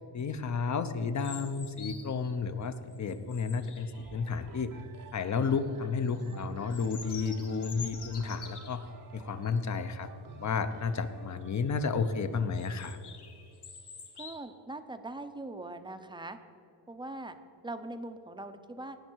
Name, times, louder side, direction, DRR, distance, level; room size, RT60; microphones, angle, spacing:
voice 1, 0.1-4.7 5.1-8.9 9.1-10.1 10.4-13.0, left 5 dB, 40° left, 11 dB, 0.6 m, -32 dB
sound 1, 1.2-2.3 2.8-4.5 5.1-5.6 6.0-8.9 9.4-9.6 10.0-10.1 10.5-10.8 11.4-12.0 12.5-14.4, left 6 dB, 60° left, 1.4 m, -48 dB
sound 2, 3.9-13.7 14.4-14.5, right 5 dB, 45° right, 0.8 m, -51 dB
voice 2, 14.2-16.4 16.9-17.4 17.6-19.0, right 2 dB, 10° right, 9 dB, 0.5 m, -41 dB
18.5 x 6.5 x 4.6 m, 2.5 s
wide cardioid pair, 155°, 45 cm